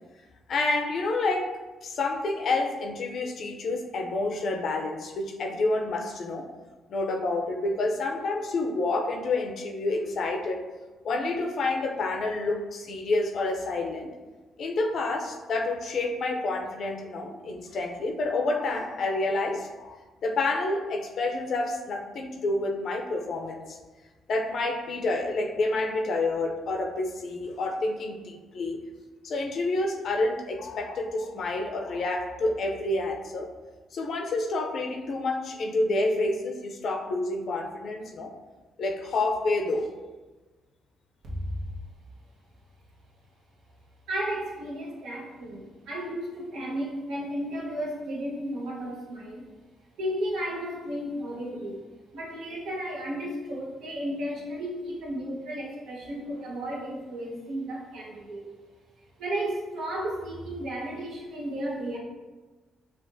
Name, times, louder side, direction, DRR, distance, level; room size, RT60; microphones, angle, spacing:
voice 1, 0.5-6.5 6.9-10.6 11.0-14.1 14.6-23.8 24.3-28.9 29.2-33.5 33.9-38.3 38.8-39.9, left 2 dB, 60° left, 3 dB, 0.5 m, -29 dB
voice 2, 41.2-41.6 44.1-49.4 50.0-51.9 52.1-58.5 59.2-62.0, equal, 80° right, -4 dB, 1.1 m, -33 dB
5.8 x 2.4 x 2.6 m, 1.2 s
cardioid pair, 90°, 0 cm